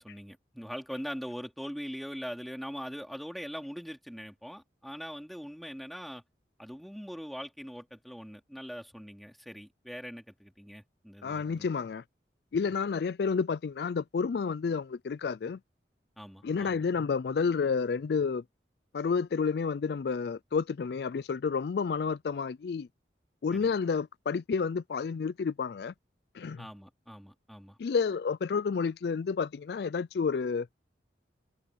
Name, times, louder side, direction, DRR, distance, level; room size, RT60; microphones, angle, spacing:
voice 1, 0.0-6.2 6.6-11.7 16.2-16.8 23.5-23.7 26.6-27.8, equal, ahead, 3.6 m, -42 dB
voice 2, 11.2-12.0 12.5-15.6 16.4-18.4 18.9-22.9 23.4-25.9 26.3-26.6 27.8-30.7, left 5 dB, 60° left, 0.4 m, -30 dB
head